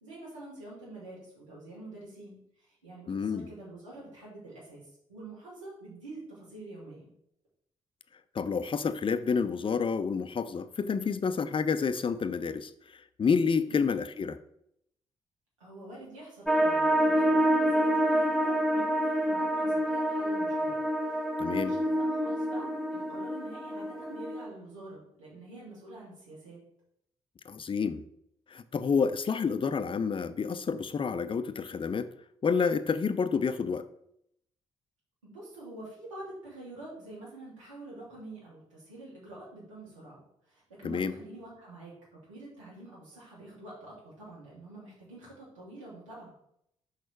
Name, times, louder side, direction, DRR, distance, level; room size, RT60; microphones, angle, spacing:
voice 1, 0.0-4.8 5.1-7.0 13.7-13.8 15.6-20.8 21.0-26.6 35.2-41.9 42.3-46.3, right 2 dB, 85° right, -7 dB, 2.8 m, -47 dB
voice 2, 3.1-3.5 8.3-12.7 13.2-14.4 21.4-21.7 27.5-28.0 28.5-32.1 32.4-33.9 40.8-41.1, left 5 dB, 35° left, 13 dB, 0.6 m, -29 dB
sound 1, 16.5-24.5, equal, ahead, 0.8 m, -27 dB
6.3 x 5.0 x 4.5 m, 0.74 s
figure-of-eight pair, 40°, 16 cm